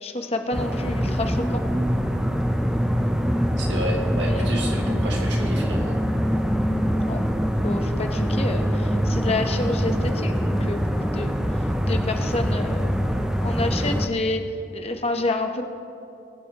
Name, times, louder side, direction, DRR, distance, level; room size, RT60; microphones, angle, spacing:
voice 1, 0.0-1.6 4.3-4.5 7.1-7.2 7.6-11.3 11.8-12.9 13.4-14.4 14.7-15.6, left 2 dB, 35° left, 5 dB, 0.9 m, -28 dB
sound 1, 0.5-14.1, equal, 5° right, 0.4 m, -24 dB
voice 2, 3.6-6.0, right 1 dB, 75° right, -1 dB, 2.0 m, -30 dB
21.0 x 7.8 x 2.9 m, 2.6 s
head